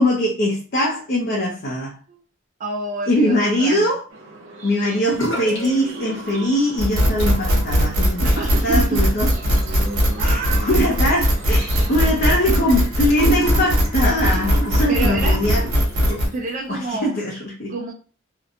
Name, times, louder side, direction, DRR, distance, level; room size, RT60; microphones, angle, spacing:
voice 1, 0.0-2.0 3.1-4.0 4.6-9.3 10.2-15.6 16.0-16.3 16.7-17.7, left 1 dB, 50° left, 0.5 m, -22 dB
voice 2, 2.6-3.9 8.2-9.0 10.2-10.6 11.7-12.1 14.9-15.4 16.2-17.1 17.7-17.9, right 3 dB, 40° right, 0.4 m, -28 dB
sound 1, 4.1-12.8, right 2 dB, 75° right, 0.7 m, -37 dB
sound 2, 5.1-5.7 6.0-6.6 7.0-16.5, right 2 dB, 70° left, 1.0 m, -30 dB
sound 3, 6.8-16.3, equal, 90° right, 1.0 m, -19 dB
2.7 x 2.1 x 2.5 m
head